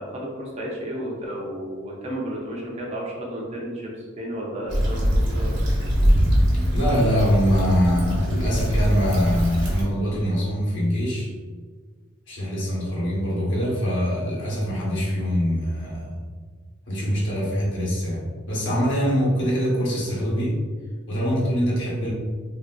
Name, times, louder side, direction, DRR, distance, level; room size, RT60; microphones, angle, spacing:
voice 1, 0.0-3.9 4.2-5.7, right 1 dB, 30° right, -2 dB, 0.5 m, -32 dB
Stream / Traffic noise roadway noise / Trickle dribble, 4.7-9.8, equal, 60° right, 0.8 m, -22 dB
voice 2, 6.7-11.3 12.3-16.2 16.9-20.6 21.1-22.1, equal, 65° left, -5 dB, 0.9 m, -23 dB
3.3 x 2.5 x 2.2 m, 1.5 s
head